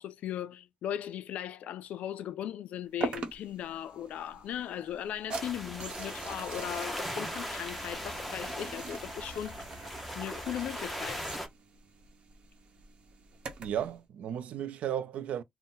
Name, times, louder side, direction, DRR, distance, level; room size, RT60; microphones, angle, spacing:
voice 1, 0.0-9.6 10.1-11.2, left 10 dB, 85° left, 0.3 m, -38 dB
sound 1, 3.0-13.9, right 4 dB, 45° right, 1.0 m, -43 dB
sound 2, 5.3-11.5, equal, 5° left, 0.7 m, -39 dB
voice 2, 13.6-15.4, right 10 dB, 70° right, 0.4 m, -34 dB
3.9 x 2.1 x 3.8 m
wide cardioid pair, 175°, 2 cm